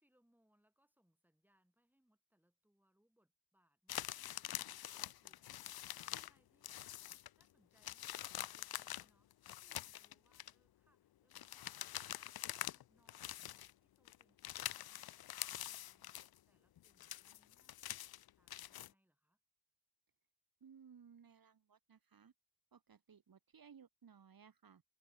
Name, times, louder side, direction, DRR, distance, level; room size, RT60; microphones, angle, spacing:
voice 1, 0.0-6.9 7.4-15.2 15.5-19.4, equal, 5° right, 6.3 m, -78 dB
sound 1, 3.9-6.4 6.6-7.4 7.8-10.5 11.3-12.8 13.1-13.7 14.1-16.4 16.8-18.9, left 12 dB, 65° left, 0.5 m, -46 dB
voice 2, 20.6-22.3 22.7-24.8, right 7 dB, 55° right, 2.0 m, -61 dB
wide cardioid pair, 95°, 41 cm